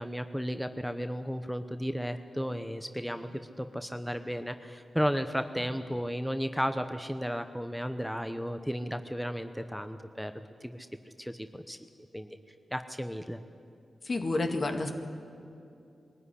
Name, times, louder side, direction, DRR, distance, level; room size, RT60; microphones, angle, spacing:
voice 1, 0.0-10.3 10.6-10.9 11.2-11.8 12.1-12.4 12.7-13.4, equal, ahead, 9 dB, 0.9 m, -34 dB
voice 2, 14.0-14.9, left 2 dB, 55° left, 5 dB, 2.1 m, -29 dB
22.0 x 13.5 x 9.9 m, 2.5 s
cardioid pair, 55°, 0 cm